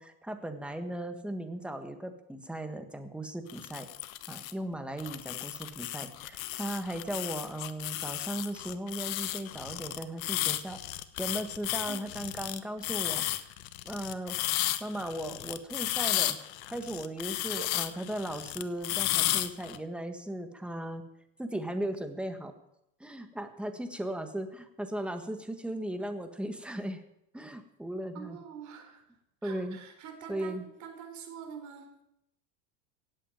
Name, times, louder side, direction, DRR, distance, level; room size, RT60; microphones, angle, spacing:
voice 1, 0.0-3.9 4.3-10.8 11.2-13.2 13.8-14.4 14.8-16.4 16.7-21.0 21.4-22.5 23.0-27.0 27.3-28.4 29.4-29.8 30.3-30.6, right 1 dB, 5° right, 7 dB, 1.5 m, -37 dB
sound 1, 3.5-4.5 5.0-19.8, left 15 dB, 80° left, 1.3 m, -33 dB
voice 2, 11.8-12.2 17.5-17.7 28.1-29.0 29.4-31.9, right 8 dB, 45° right, 6 dB, 4.1 m, -45 dB
16.5 x 8.5 x 9.3 m, 0.81 s
supercardioid pair, 135°, 40 cm